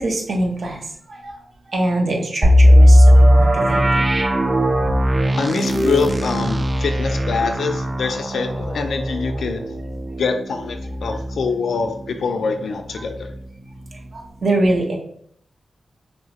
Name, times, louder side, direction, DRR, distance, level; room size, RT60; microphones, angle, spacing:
voice 1, 0.0-4.2 5.3-5.4 9.3-9.4 11.1-11.2 12.9-13.1 13.9-15.0, right 1 dB, 60° right, 1 dB, 0.7 m, -24 dB
sound 1, 2.4-12.2 12.5-12.6 13.1-13.3, equal, 25° right, 0.3 m, -17 dB
voice 2, 5.4-9.6 10.2-13.4, left 5 dB, 90° left, 5 dB, 0.3 m, -24 dB
sound 2, 5.6-6.6, equal, 10° left, 0.7 m, -26 dB
3.2 x 2.8 x 2.9 m, 0.66 s
wide cardioid pair, 150°, 0 cm